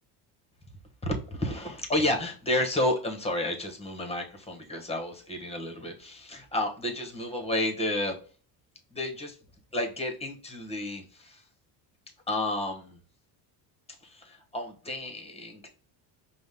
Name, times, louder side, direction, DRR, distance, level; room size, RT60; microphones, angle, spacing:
voice 1, 1.0-8.2 8.9-9.4 9.7-11.4 12.3-13.0 14.0-15.7, left 1 dB, 10° left, 3 dB, 1.0 m, -31 dB
5.0 x 2.3 x 3.5 m, 0.39 s
supercardioid pair, 90°, 50 cm